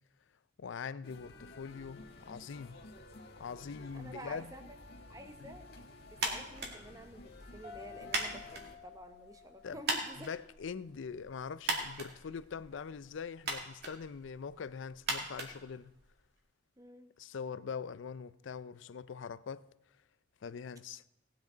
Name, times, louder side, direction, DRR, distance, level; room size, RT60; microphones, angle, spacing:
voice 1, 0.6-2.8 3.4-4.5 5.4-5.5 9.6-9.8 10.2-15.9 17.2-19.6 20.4-21.0, left 6 dB, 70° left, 0.4 m, -43 dB
sound 1, 1.0-8.7, left 2 dB, 55° left, 1.5 m, -53 dB
voice 2, 3.9-4.6 5.1-5.7 6.1-10.3 16.8-17.1, right 1 dB, 20° right, 0.9 m, -50 dB
sound 2, 6.1-16.3, right 2 dB, 55° right, 2.2 m, -41 dB
sound 3, 7.6-10.9, left 7 dB, 35° right, 3.7 m, -53 dB
18.5 x 9.5 x 3.9 m
head